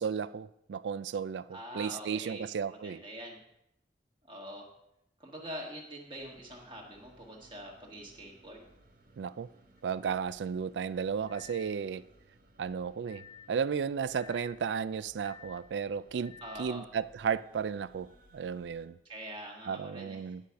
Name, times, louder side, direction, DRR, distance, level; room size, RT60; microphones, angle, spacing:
voice 1, 0.0-3.0 9.2-9.5 9.8-12.0 12.6-19.0 19.7-20.4, right 6 dB, 80° right, 0.4 m, -34 dB
voice 2, 1.5-3.4 4.3-4.7 5.2-8.6 16.4-16.8 19.0-20.3, equal, 30° right, 1.7 m, -44 dB
sound 1, 6.2-18.9, right 1 dB, 55° right, 1.2 m, -62 dB
sound 2, 9.8-9.9 11.3-11.8 13.0-13.6 14.1-14.6 15.2-15.7 16.2-16.7, left 8 dB, 25° left, 0.5 m, -53 dB
10.5 x 4.9 x 5.7 m
head